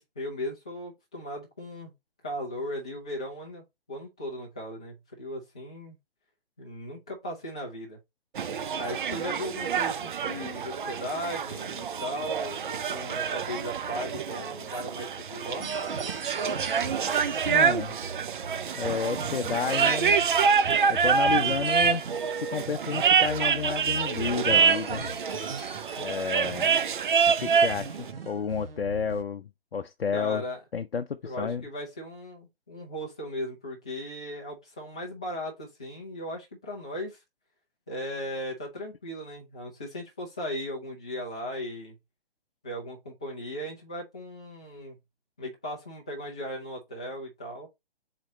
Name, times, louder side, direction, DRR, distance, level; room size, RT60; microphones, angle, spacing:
voice 1, 0.0-1.9 2.2-3.6 3.9-6.0 6.6-8.0 8.8-15.7 30.1-30.6 31.2-37.2 37.9-42.0 42.6-45.0 45.4-47.7, equal, 5° left, 0.3 m, -37 dB
sound 1, 8.3-27.9, right 6 dB, 55° right, 0.6 m, -26 dB
sound 2, 15.6-29.2, right 3 dB, 70° right, 1.0 m, -38 dB
voice 2, 17.5-17.9 18.7-20.2 20.9-22.0 22.3-25.1 26.0-26.7 27.3-30.4 30.7-31.6, left 6 dB, 85° left, 0.6 m, -31 dB
4.1 x 2.9 x 4.1 m
figure-of-eight pair, 140°, 30 cm